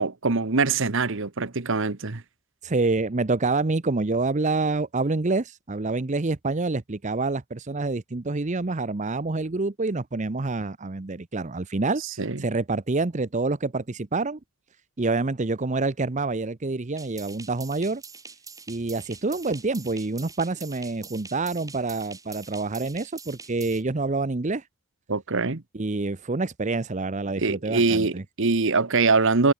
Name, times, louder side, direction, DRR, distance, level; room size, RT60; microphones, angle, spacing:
voice 1, 0.0-2.2 12.2-12.4 25.1-25.6 27.4-29.5, right 4 dB, 60° right, 1.2 m, -23 dB
voice 2, 2.6-14.4 15.0-18.0 18.7-24.6 25.7-28.2, right 3 dB, 35° right, 0.7 m, -27 dB
sound 1, 17.0-23.8, right 5 dB, 15° right, 4.2 m, -45 dB
head